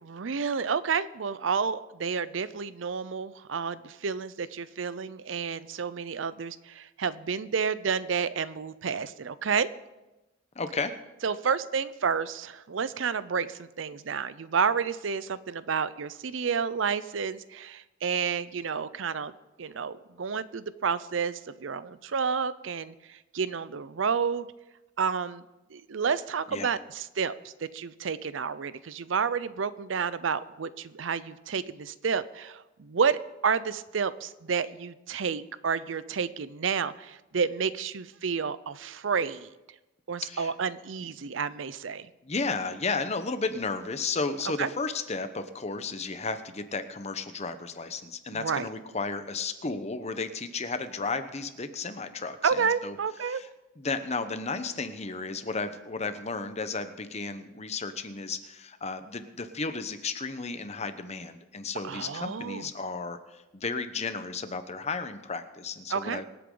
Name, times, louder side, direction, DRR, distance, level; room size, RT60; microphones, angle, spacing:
voice 1, 0.0-9.7 11.2-19.3 19.6-24.5 25.0-25.4 25.7-39.5 40.1-42.1 44.6-44.7 48.3-48.7 52.4-53.4 61.8-62.7 65.9-66.2, right 6 dB, 75° right, 16 dB, 0.6 m, -30 dB
voice 2, 10.5-10.9 26.5-26.7 40.2-40.5 42.2-53.0 53.2-53.5 53.8-66.2, left 4 dB, 35° left, 9 dB, 0.9 m, -33 dB
25.0 x 8.4 x 3.9 m, 1.0 s
head